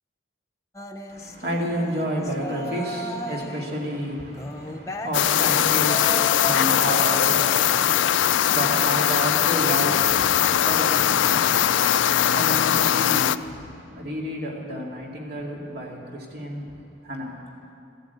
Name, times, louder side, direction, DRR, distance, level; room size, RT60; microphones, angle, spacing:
sound 1, 0.7-3.8 4.3-8.3, left 1 dB, 15° left, 0.7 m, -35 dB
voice 1, 1.1-17.3, equal, 55° right, -1 dB, 2.5 m, -31 dB
sound 2, 5.1-13.4, left 10 dB, 75° left, 0.4 m, -20 dB
14.0 x 12.5 x 8.2 m, 2.6 s
head